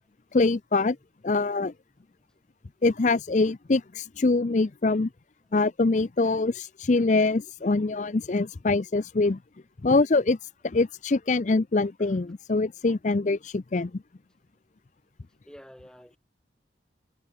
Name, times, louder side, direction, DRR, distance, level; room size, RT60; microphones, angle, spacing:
voice 1, 0.3-1.0 1.2-1.7 2.8-5.1 5.5-9.4 9.8-14.0, left 3 dB, 40° left, 0.5 m, -24 dB
voice 2, 15.5-16.2, equal, 5° left, 2.0 m, -49 dB
head